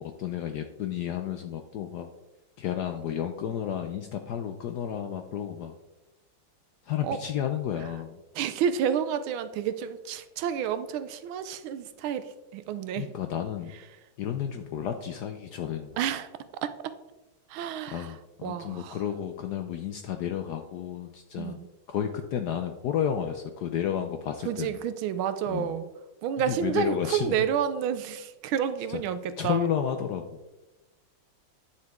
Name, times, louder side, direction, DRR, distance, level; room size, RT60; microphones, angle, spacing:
voice 1, 0.0-2.1 2.6-5.8 6.9-8.2 13.0-13.7 14.2-16.0 17.9-21.6 21.9-24.8 25.5-25.7 26.5-27.4 28.9-29.0 29.4-30.4, left 9 dB, 75° left, 6 dB, 0.9 m, -32 dB
voice 2, 8.3-13.1 16.0-16.3 16.6-17.0 17.5-19.0 21.4-21.7 24.4-25.9 26.2-29.7, right 8 dB, 80° right, 12 dB, 1.4 m, -30 dB
9.5 x 6.8 x 3.5 m, 1.0 s
omnidirectional pair, 2.3 m